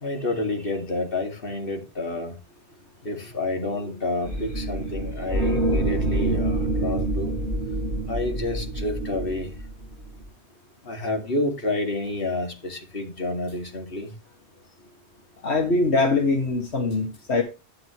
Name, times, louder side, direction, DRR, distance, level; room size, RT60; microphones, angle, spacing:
voice 1, 0.0-2.3 3.0-7.3 8.1-9.5 10.9-14.1, left 2 dB, 55° left, 2.6 m, -29 dB
sound 1, 4.2-10.2, right 2 dB, 65° right, 3.0 m, -26 dB
voice 2, 15.4-17.4, left 3 dB, 70° left, 2.0 m, -22 dB
11.5 x 9.1 x 3.1 m
omnidirectional pair, 1.1 m